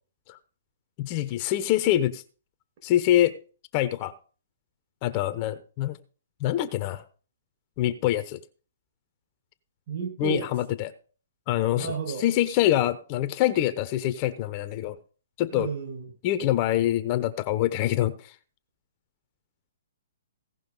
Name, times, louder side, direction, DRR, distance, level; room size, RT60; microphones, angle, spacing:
voice 1, 1.0-2.2 2.8-3.3 3.7-4.1 5.0-6.0 6.4-7.0 7.8-8.4 10.2-10.9 11.5-15.0 15.4-15.7 16.2-18.1, left 13 dB, 35° left, 11 dB, 0.9 m, -25 dB
voice 2, 9.9-10.5 11.8-12.3 15.5-16.1, right 5 dB, 45° right, 4 dB, 5.7 m, -32 dB
17.0 x 5.7 x 5.4 m, 0.38 s
hypercardioid pair, 140°, 0 cm